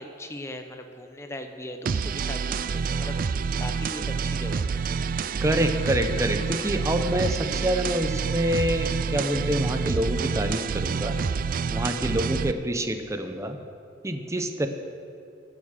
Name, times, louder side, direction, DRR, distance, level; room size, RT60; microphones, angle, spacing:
voice 1, 0.0-4.8, left 1 dB, 15° left, 6 dB, 0.8 m, -39 dB
sound 1, 1.9-12.5, right 5 dB, 45° right, 0.3 m, -28 dB
voice 2, 5.4-11.2 11.7-13.6 14.0-14.7, equal, 15° right, 7 dB, 0.7 m, -27 dB
15.5 x 7.0 x 6.6 m, 2.4 s
head